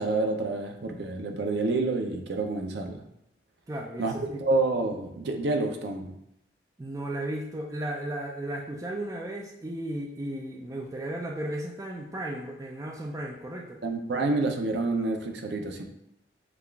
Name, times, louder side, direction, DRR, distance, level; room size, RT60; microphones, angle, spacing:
voice 1, 0.0-3.0 4.0-6.2 13.8-15.8, right 3 dB, 70° right, 4 dB, 0.5 m, -28 dB
voice 2, 3.7-4.4 6.8-13.8, right 1 dB, 20° right, 0 dB, 0.3 m, -35 dB
6.8 x 2.4 x 2.3 m, 0.77 s
head